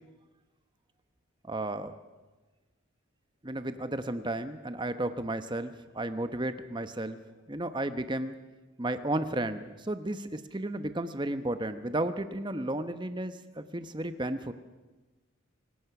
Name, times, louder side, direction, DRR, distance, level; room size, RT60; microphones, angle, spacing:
voice 1, 1.4-1.9 3.4-7.2 7.5-8.4 8.8-14.5, right 1 dB, 20° right, 10 dB, 0.9 m, -33 dB
28.0 x 18.0 x 6.0 m, 1.2 s
head